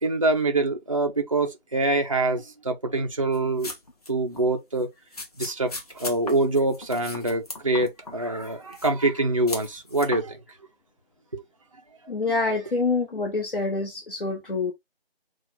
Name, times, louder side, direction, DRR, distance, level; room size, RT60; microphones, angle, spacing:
voice 1, 0.0-3.7 4.1-4.9 5.4-5.7 6.0-10.4 11.3-11.4, right 2 dB, 35° right, 0.6 m, -25 dB
sound 1, 3.3-4.1 4.3-4.5 5.1-8.1 8.4-9.1 9.5-10.2, left 2 dB, 40° left, 1.3 m, -37 dB
voice 2, 12.1-14.7, left 3 dB, 60° left, 1.3 m, -26 dB
5.8 x 2.4 x 3.7 m
figure-of-eight pair, 170°, 31 cm